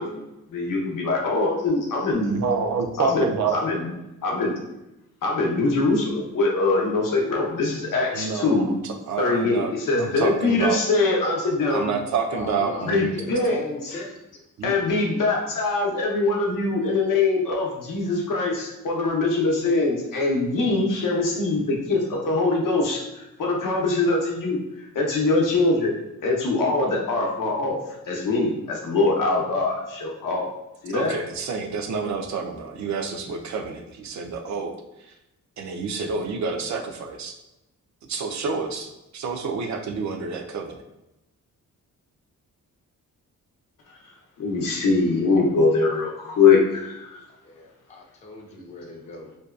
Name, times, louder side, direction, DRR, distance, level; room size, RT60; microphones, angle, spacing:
voice 1, 0.0-2.4 3.0-3.3 3.5-3.9 4.2-4.5 5.2-8.7 9.2-11.9 12.8-13.6 13.8-14.0 14.6-24.6 24.9-25.9 26.2-27.8 28.1-30.5 30.8-31.1 44.4-47.2, left 3 dB, 80° left, -1 dB, 0.7 m, -23 dB
voice 2, 2.3-3.6 8.1-9.7 10.0-10.8 11.7-13.1 14.6-14.7 30.9-34.8 35.1-35.2 35.6-37.3 38.1-40.8, right 5 dB, 60° right, 5 dB, 0.4 m, -28 dB
voice 3, 12.3-14.4 47.4-49.4, left 3 dB, 25° left, 1 dB, 0.4 m, -37 dB
2.6 x 2.2 x 2.3 m, 0.92 s
cardioid pair, 100°, 32 cm